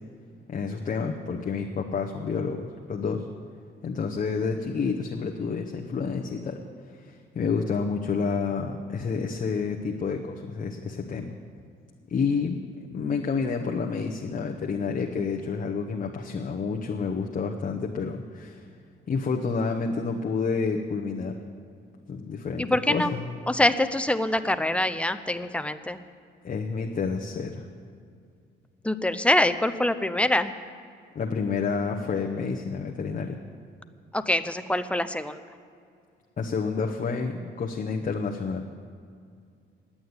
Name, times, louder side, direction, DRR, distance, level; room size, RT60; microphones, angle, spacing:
voice 1, 0.5-3.3 3.8-6.6 7.0-11.4 12.1-12.6 12.9-18.7 19.1-21.3 22.1-23.2 26.4-27.6 31.1-33.4 36.4-38.7, left 5 dB, 40° left, 1 dB, 1.0 m, -29 dB
voice 2, 22.6-23.1 23.5-26.0 28.8-30.5 34.1-35.4, left 1 dB, 5° left, 11 dB, 0.6 m, -24 dB
9.4 x 8.7 x 9.6 m, 2.3 s
cardioid pair, 90°, 20 cm